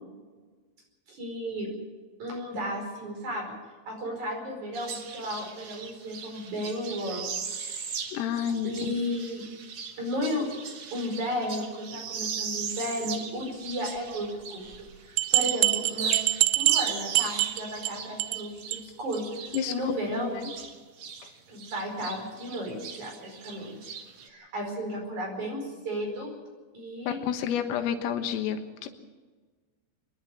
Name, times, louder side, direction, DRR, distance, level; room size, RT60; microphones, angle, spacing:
voice 1, 1.1-1.7 2.2-3.6 3.9-7.7 8.6-9.5 10.0-10.5 10.9-14.7 15.0-16.2 16.5-19.3 19.7-20.4 21.5-23.9 24.2-26.3 26.7-27.2, equal, 40° right, 1 dB, 6.0 m, -34 dB
sound 1, 4.7-14.9 15.2-21.3 21.6-24.3, right 6 dB, 65° right, 1.8 m, -38 dB
voice 2, 8.1-8.9 19.5-19.7 20.2-20.3 27.1-28.9, left 8 dB, 90° left, 7 dB, 4.0 m, -30 dB
sound 2, 14.7-14.8 15.2-17.9 18.2-18.4 18.7-18.8 19.1-19.2 19.5-19.6, right 17 dB, 80° right, 3.0 m, -24 dB
25.5 x 11.0 x 9.7 m, 1.4 s
omnidirectional pair, 5.8 m